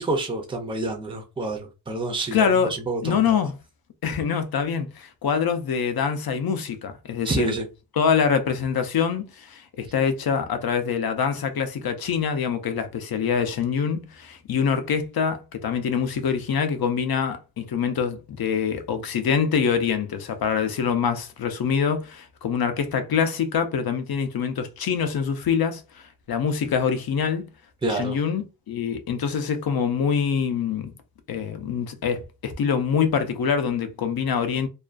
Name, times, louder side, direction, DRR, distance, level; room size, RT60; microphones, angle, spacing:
voice 1, 0.0-3.3 7.2-7.7 27.8-28.2, right 2 dB, 15° right, 0.4 m, -28 dB
voice 2, 2.3-2.7 3.0-3.5 4.0-7.5 8.0-27.5 27.8-30.9 31.3-34.7, left 7 dB, 60° left, 0.5 m, -25 dB
2.3 x 2.2 x 2.4 m
wide cardioid pair, 170°, 42 cm